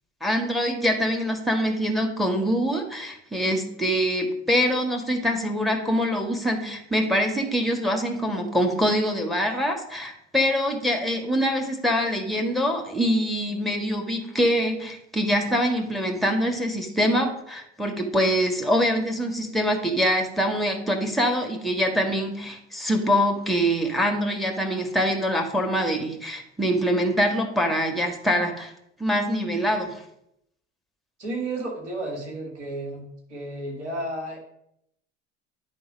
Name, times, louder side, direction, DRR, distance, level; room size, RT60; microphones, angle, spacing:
voice 1, 0.2-28.7 29.0-30.0, equal, ahead, 2 dB, 1.7 m, -24 dB
voice 2, 31.2-33.0 33.3-34.4, right 2 dB, 85° right, -1 dB, 2.0 m, -32 dB
11.0 x 3.8 x 5.1 m, 0.75 s
hypercardioid pair, 60°, 34 cm